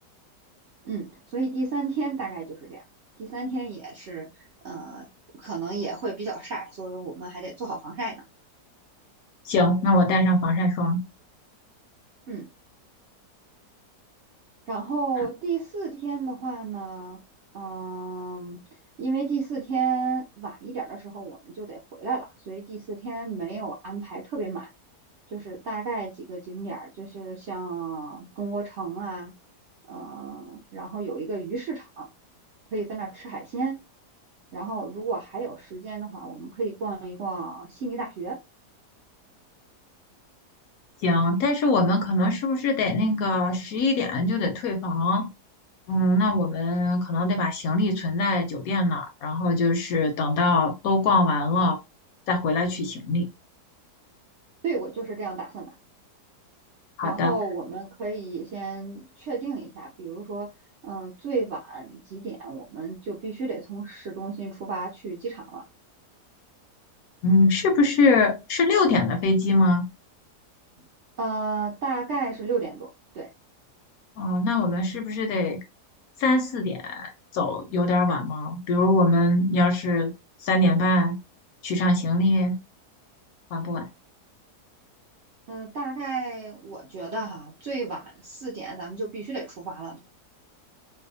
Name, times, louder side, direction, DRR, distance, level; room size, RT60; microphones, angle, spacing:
voice 1, 0.8-2.8 3.2-5.1 5.3-8.2 12.3-12.5 14.7-17.2 17.5-18.6 19.0-24.7 25.3-29.3 29.9-32.1 32.7-33.8 34.5-38.4 54.6-55.7 57.0-60.5 60.8-65.6 71.2-72.9 73.1-73.3 85.5-90.0, right 4 dB, 65° right, 0.7 m, -32 dB
voice 2, 9.5-11.0 41.0-45.3 45.9-51.8 52.3-53.3 57.0-57.4 67.2-69.8 74.2-75.6 76.2-80.1 80.4-81.2 81.6-82.6 83.5-83.9, left 2 dB, 70° left, 0.9 m, -23 dB
2.7 x 2.2 x 2.6 m
omnidirectional pair, 1.8 m